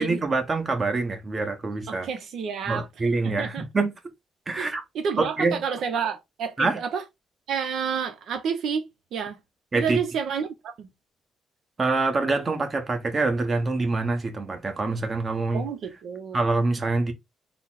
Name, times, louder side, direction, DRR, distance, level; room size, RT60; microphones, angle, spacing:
voice 1, 0.0-2.1 2.7-3.9 4.5-4.8 5.2-5.6 6.6-6.8 9.7-10.0 11.8-15.7 16.3-17.1, right 3 dB, 30° right, 1.0 m, -25 dB
voice 2, 1.9-2.8 3.2-3.6 4.6-4.7 4.9-7.0 7.5-8.8 9.1-9.4 9.8-10.9 15.5-16.4, right 6 dB, 70° right, 0.6 m, -29 dB
4.0 x 2.0 x 3.9 m
cardioid pair, 90°, 0 cm